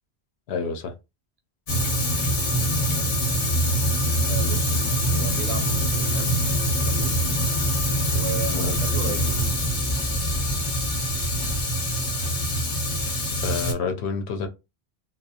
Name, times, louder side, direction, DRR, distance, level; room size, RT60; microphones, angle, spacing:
voice 1, 0.5-0.9 2.2-2.3 8.5-8.8 13.4-14.5, left 5 dB, 80° left, 0.8 m, -29 dB
Fire, 1.7-13.7, equal, 50° left, 0.8 m, -24 dB
voice 2, 4.2-4.9 5.1-6.4 6.8-7.3 8.1-9.5, right 6 dB, 75° right, 0.8 m, -35 dB
Speech / Wind, 6.7-11.6, equal, 25° left, 0.6 m, -35 dB
2.4 x 2.2 x 2.7 m
omnidirectional pair, 1.1 m